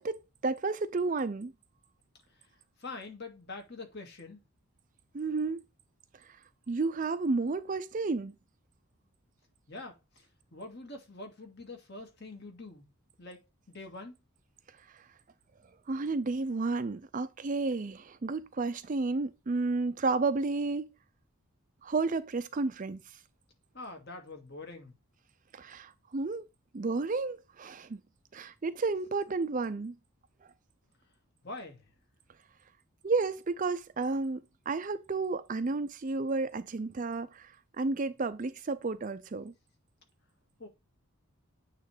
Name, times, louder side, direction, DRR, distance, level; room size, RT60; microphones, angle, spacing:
voice 1, 0.0-1.5 5.1-5.6 6.7-8.3 15.9-20.9 21.8-23.0 25.5-26.4 26.7-28.0 28.3-29.9 33.0-34.4 34.7-39.5, right 3 dB, 35° right, 0.4 m, -32 dB
voice 2, 2.8-4.4 9.7-10.3 10.5-12.9 13.2-13.4 13.7-14.2 23.7-24.9 31.4-31.8 40.6-40.7, left 2 dB, 50° left, 2.0 m, -44 dB
8.8 x 3.2 x 4.9 m
head